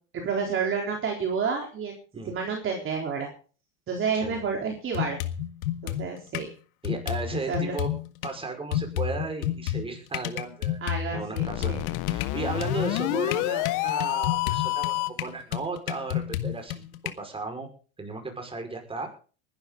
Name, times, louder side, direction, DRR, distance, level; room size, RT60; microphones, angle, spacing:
voice 1, 0.1-2.0 2.2-3.3 3.9-5.2 5.8-6.5 7.3-7.7 10.8-11.8, right 5 dB, 30° right, 1 dB, 4.0 m, -30 dB
sound 1, 4.2-4.4 4.9-6.5 6.8-8.3 8.7-17.1, left 12 dB, 80° left, 1.8 m, -31 dB
voice 2, 6.8-7.9 8.2-10.8 11.1-11.7 12.1-16.8 17.2-17.7 18.0-19.1, right 3 dB, 15° right, 4 dB, 5.4 m, -35 dB
sound 2, 11.4-15.3, left 20 dB, 50° left, 0.7 m, -28 dB
20.0 x 12.0 x 4.0 m, 0.39 s
supercardioid pair, 130°, 40 cm